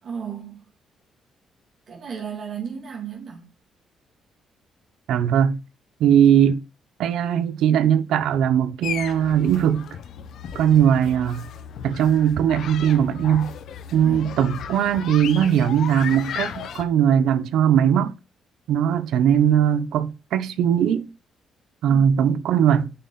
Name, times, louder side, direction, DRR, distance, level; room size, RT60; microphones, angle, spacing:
voice 1, 0.0-0.6 1.9-3.5 14.0-14.4 21.9-22.1, right 7 dB, 60° right, 2.9 m, -34 dB
voice 2, 5.1-5.6 6.0-6.6 7.0-9.8 10.5-11.5 11.8-13.5 13.9-18.1 18.7-21.1 21.8-22.9, right 9 dB, 80° right, 0.9 m, -19 dB
sound 1, 8.8-16.8, left 8 dB, 70° left, 1.1 m, -35 dB
9.1 x 5.6 x 4.2 m
cardioid pair, 90°, 0 cm